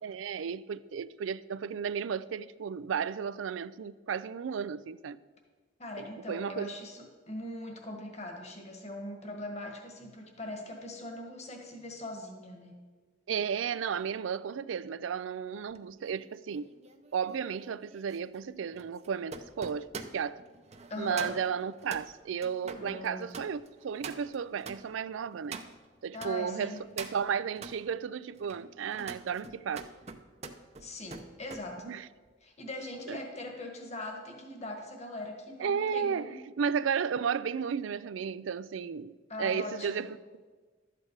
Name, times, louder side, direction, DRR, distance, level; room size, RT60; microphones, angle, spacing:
voice 1, 0.0-5.2 6.0-6.7 13.3-16.8 17.1-20.4 21.0-25.6 26.0-29.9 31.8-32.1 33.1-33.2 35.6-40.2, right 7 dB, 85° right, 0.4 m, -34 dB
voice 2, 5.8-12.7 20.9-21.4 22.7-23.3 26.1-26.8 30.8-32.0 32.4-36.4 39.3-40.0, left 1 dB, 35° left, 1.6 m, -41 dB
sound 1, 15.7-26.3 26.7-27.8 28.3-31.7 32.0-32.3, right 4 dB, 35° right, 0.7 m, -46 dB
12.0 x 8.5 x 4.7 m
head